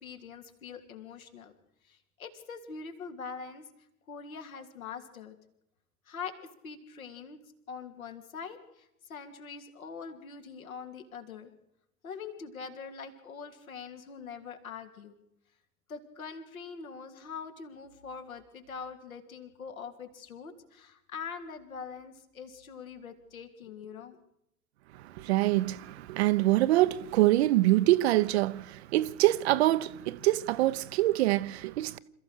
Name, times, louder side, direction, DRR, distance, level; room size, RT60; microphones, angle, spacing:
voice 1, 0.0-1.5 1.9-3.7 4.1-5.3 6.1-6.4 6.6-7.4 7.7-11.5 12.0-15.2 15.9-24.2, left 6 dB, 65° left, 3.2 m, -43 dB
voice 2, 24.9-32.0, right 16 dB, 45° right, 0.9 m, -25 dB
27.0 x 14.5 x 6.6 m
figure-of-eight pair, 90°, 44 cm